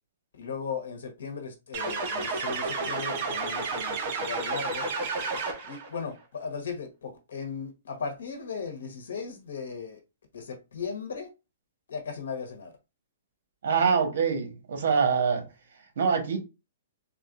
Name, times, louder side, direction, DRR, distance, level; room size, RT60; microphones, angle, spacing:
voice 1, 0.3-4.9 5.6-10.0 10.3-11.3 11.9-12.7, left 5 dB, 85° left, 1.0 m, -37 dB
sound 1, 1.7-5.9, right 3 dB, 35° right, 0.9 m, -31 dB
voice 2, 13.6-15.4 16.0-16.4, right 6 dB, 70° right, 1.2 m, -24 dB
3.6 x 2.4 x 2.5 m
hypercardioid pair, 160°, 0 cm